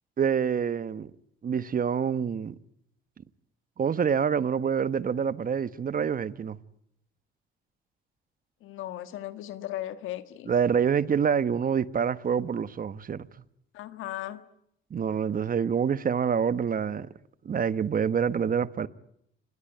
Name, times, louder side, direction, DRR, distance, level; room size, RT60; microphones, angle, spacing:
voice 1, 0.2-1.1 1.4-2.5 3.8-6.6 10.5-13.3 14.9-17.1 17.4-18.9, right 7 dB, 45° right, 1.2 m, -26 dB
voice 2, 8.6-10.5 13.7-14.5, left 13 dB, 90° left, 1.6 m, -37 dB
26.5 x 21.0 x 9.1 m
cardioid pair, 90°, 20 cm